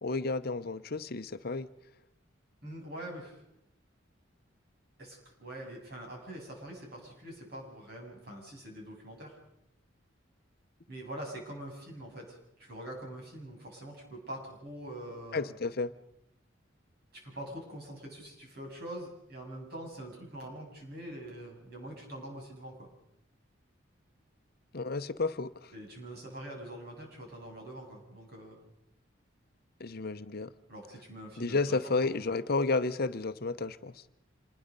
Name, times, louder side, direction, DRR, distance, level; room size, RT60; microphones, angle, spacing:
voice 1, 0.0-1.7 15.3-15.9 24.7-25.7 29.8-30.5 31.4-33.9, left 3 dB, 50° left, 0.8 m, -31 dB
voice 2, 2.6-3.4 5.0-9.4 10.9-15.6 17.1-22.9 25.7-28.6 30.7-31.9, right 1 dB, 55° right, 7.8 m, -44 dB
27.0 x 20.5 x 5.4 m
head